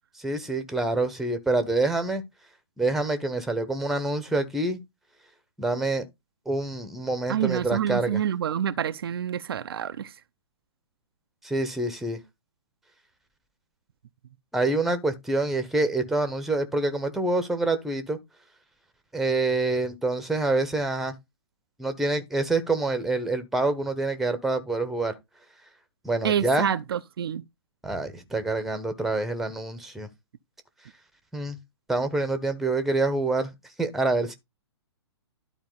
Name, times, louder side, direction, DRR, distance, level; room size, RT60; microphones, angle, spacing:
voice 1, 0.2-2.2 2.8-4.8 5.6-6.1 6.5-8.2 11.4-12.2 14.5-18.2 19.1-21.1 21.8-25.1 26.0-26.7 27.8-30.1 31.3-31.6 31.9-33.5 33.8-34.3, right 2 dB, ahead, 1.0 m, -26 dB
voice 2, 7.3-10.1 26.2-27.4, right 9 dB, 60° right, 0.6 m, -27 dB
12.0 x 4.2 x 3.9 m
figure-of-eight pair, 120°, 14 cm